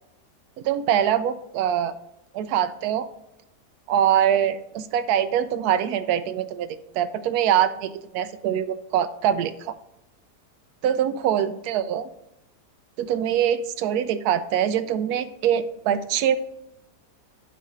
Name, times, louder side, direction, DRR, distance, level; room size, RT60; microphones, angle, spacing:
voice 1, 0.6-1.9 2.3-3.1 3.9-9.7 10.8-12.1 13.0-16.4, right 9 dB, 70° right, 11 dB, 1.0 m, -23 dB
11.0 x 4.3 x 3.7 m, 0.83 s
omnidirectional pair, 1.8 m